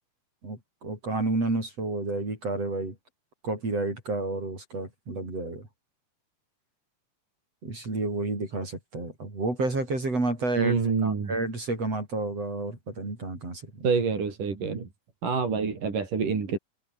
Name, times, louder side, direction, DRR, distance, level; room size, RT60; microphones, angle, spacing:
voice 1, 0.4-2.9 3.4-5.7 7.6-10.8 11.0-13.9, right 2 dB, 40° right, 8.7 m, -30 dB
voice 2, 10.6-11.4 13.8-14.9 15.2-16.6, right 5 dB, 60° right, 6.0 m, -27 dB
omnidirectional pair, 4.4 m